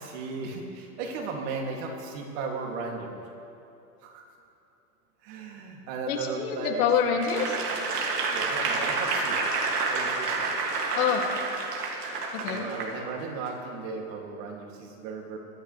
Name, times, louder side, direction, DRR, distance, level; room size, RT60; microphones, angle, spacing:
voice 1, 0.0-3.2 4.0-4.3 5.2-6.8 8.3-9.4 9.9-10.5 12.5-15.4, right 4 dB, 50° right, 0 dB, 2.5 m, -36 dB
voice 2, 6.1-7.6 10.9-11.3 12.3-12.7, left 7 dB, 65° left, 1 dB, 2.4 m, -26 dB
Applause / Crowd, 7.2-12.9 13.5-13.6, right 3 dB, 75° right, 2.4 m, -29 dB
23.0 x 10.5 x 3.3 m, 2.7 s
hypercardioid pair, 120°, 46 cm